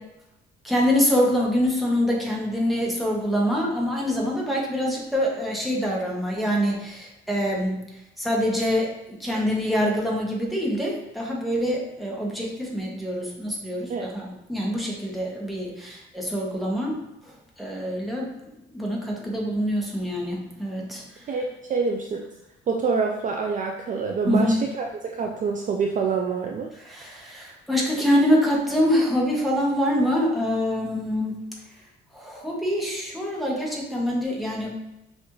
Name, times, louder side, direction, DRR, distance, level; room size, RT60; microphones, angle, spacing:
voice 1, 0.6-7.8 8.2-8.9 9.2-17.3 17.6-21.2 24.3-24.6 26.8-31.4 32.1-34.7, equal, ahead, -3 dB, 1.1 m, -25 dB
voice 2, 21.3-22.2 22.7-26.7, right 5 dB, 40° right, 2 dB, 0.4 m, -26 dB
5.9 x 2.6 x 3.1 m, 0.92 s
cardioid pair, 125°, 21 cm